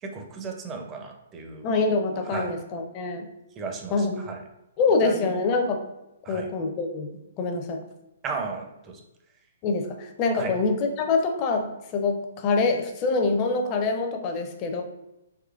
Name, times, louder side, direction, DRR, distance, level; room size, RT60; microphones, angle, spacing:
voice 1, 0.0-1.7 2.3-2.5 3.6-4.4 5.0-5.4 6.2-6.5 8.2-9.0 10.3-10.5, right 4 dB, 20° right, 3 dB, 0.4 m, -35 dB
voice 2, 1.6-3.3 3.9-4.2 4.8-5.8 6.3-7.1 7.4-7.8 9.6-14.8, left 3 dB, 30° left, 5 dB, 0.5 m, -25 dB
3.6 x 2.9 x 2.3 m, 0.91 s
hypercardioid pair, 145°, 0 cm